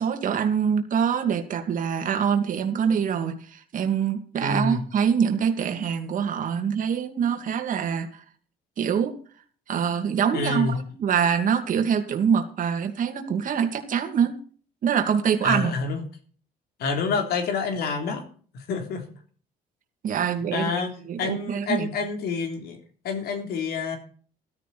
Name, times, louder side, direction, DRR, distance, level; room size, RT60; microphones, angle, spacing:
voice 1, 0.0-8.2 8.8-9.1 9.7-14.3 14.8-15.7 20.0-20.7 21.1-21.9, right 7 dB, 50° right, 5 dB, 2.5 m, -24 dB
voice 2, 4.4-4.9 10.3-10.8 15.4-16.0 16.8-18.2 18.7-19.0 20.5-20.9 21.2-22.8 23.0-24.0, left 4 dB, 70° left, 5 dB, 3.4 m, -27 dB
14.0 x 12.5 x 4.3 m, 0.43 s
cardioid pair, 110°, 17 cm